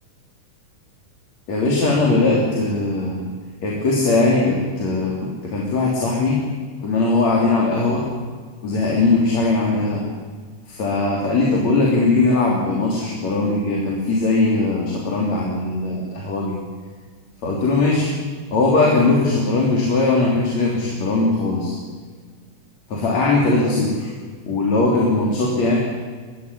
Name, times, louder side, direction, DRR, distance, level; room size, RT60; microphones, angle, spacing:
voice 1, 1.5-3.2 3.6-6.4 6.8-8.0 8.6-10.0 10.7-16.6 17.4-18.1 18.5-21.8 22.9-24.1 24.4-25.8, left 3 dB, 60° left, -3 dB, 4.4 m, -19 dB
23.5 x 15.0 x 10.0 m, 1.5 s
omnidirectional pair, 3.6 m